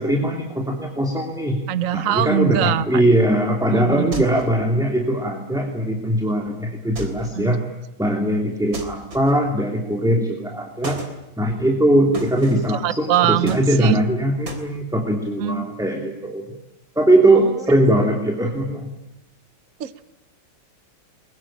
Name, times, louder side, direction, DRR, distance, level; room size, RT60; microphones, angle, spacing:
voice 1, 0.0-1.6 1.9-7.6 8.0-11.0 11.4-16.4 16.9-18.9, right 1 dB, ahead, 2 dB, 2.9 m, -20 dB
voice 2, 1.7-3.0 3.7-4.2 7.4-7.5 12.5-14.0 15.4-15.6 17.3-17.6 19.8-20.0, right 10 dB, 50° right, 14 dB, 1.2 m, -23 dB
sound 1, 4.1-4.6 7.0-7.4 8.7-9.5 10.8-11.2 12.1-12.8 13.5-14.1 14.5-14.7, right 2 dB, 70° right, 4.2 m, -35 dB
23.0 x 22.5 x 8.8 m, 0.93 s
omnidirectional pair, 2.2 m